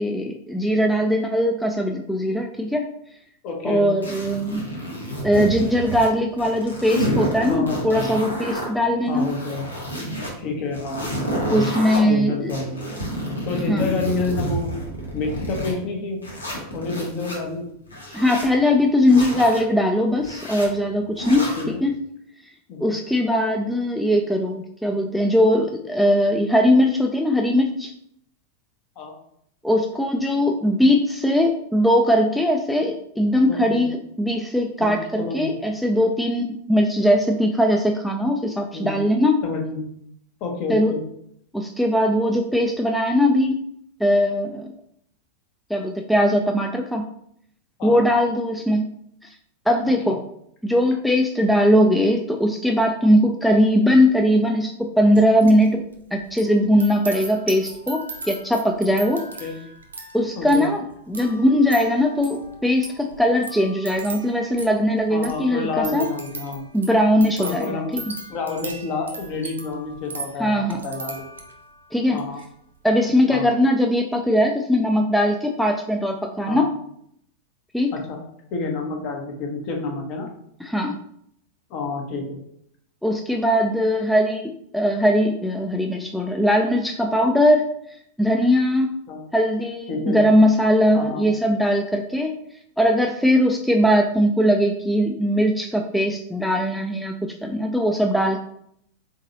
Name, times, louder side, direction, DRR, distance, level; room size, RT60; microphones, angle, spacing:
voice 1, 0.0-2.9 3.6-4.7 5.2-9.3 11.5-12.5 13.7-13.9 18.1-22.0 22.8-27.9 29.6-39.4 40.7-40.9 41.5-43.6 44.0-44.7 45.7-47.1 47.8-48.9 49.7-50.2 50.6-59.2 60.1-66.1 66.7-68.0 70.4-70.8 71.9-72.2 72.8-76.7 77.7-77.9 80.6-81.0 83.0-87.7 88.2-88.9 89.3-92.3 92.8-98.4, equal, ahead, 2 dB, 0.3 m, -20 dB
voice 2, 3.4-3.8 7.5-7.8 9.1-9.7 10.4-11.1 12.0-12.9 13.4-14.7 15.1-16.2 16.7-17.7 21.6-21.7 22.7-22.9 29.0-29.1 33.4-33.9 34.8-35.6 38.7-39.0 39.4-39.9 40.4-41.0 47.8-48.0 50.1-50.2 59.4-59.5 60.4-60.7 65.1-66.7 67.4-67.9 68.3-71.3 72.1-72.4 73.3-73.5 76.5-76.7 77.9-78.2 78.5-80.3 81.7-82.4 89.1-89.2 89.9-90.2 90.9-91.2, left 3 dB, 40° left, 1 dB, 1.0 m, -29 dB
sound 1, 4.0-6.1 6.4-8.7 9.1-10.3 10.7-12.0 12.5-15.7 16.2-17.4 17.9-18.5 19.1-19.6 20.2-20.7 21.2-21.7, equal, 80° left, 1.1 m, -29 dB
sound 2, 55.1-55.7 55.9-71.7 72.1-72.5, right 3 dB, 70° right, 0.7 m, -38 dB
3.8 x 3.8 x 2.7 m, 0.71 s
figure-of-eight pair, 90°, 0 cm